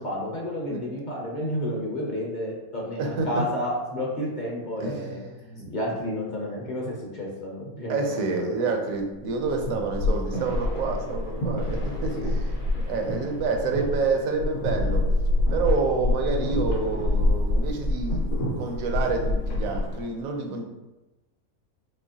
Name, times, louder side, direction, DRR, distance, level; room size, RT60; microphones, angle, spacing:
voice 1, 0.0-5.2 5.7-8.6 12.0-12.3, left 1 dB, 40° left, -2 dB, 0.7 m, -31 dB
voice 2, 3.0-3.4 4.8-5.7 7.9-15.0 15.5-20.6, right 4 dB, 70° right, 3 dB, 1.1 m, -28 dB
sound 1, 9.2-20.0, left 1 dB, 65° left, 1.3 m, -26 dB
5.6 x 3.0 x 2.8 m, 1.0 s
omnidirectional pair, 1.6 m